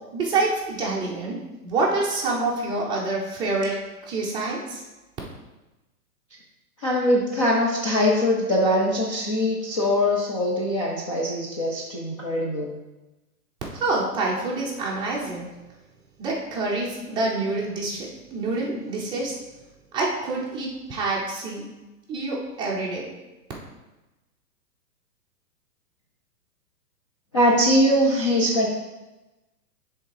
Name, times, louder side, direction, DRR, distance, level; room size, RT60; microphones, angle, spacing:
voice 1, 0.1-4.8 13.8-15.5 16.2-19.4 19.9-21.7 22.1-23.1, right 3 dB, 10° right, -4 dB, 0.7 m, -27 dB
voice 2, 6.8-12.7 27.3-28.7, left 1 dB, 20° left, -4 dB, 0.4 m, -22 dB
6.8 x 3.6 x 4.8 m, 1.1 s
hypercardioid pair, 145°, 48 cm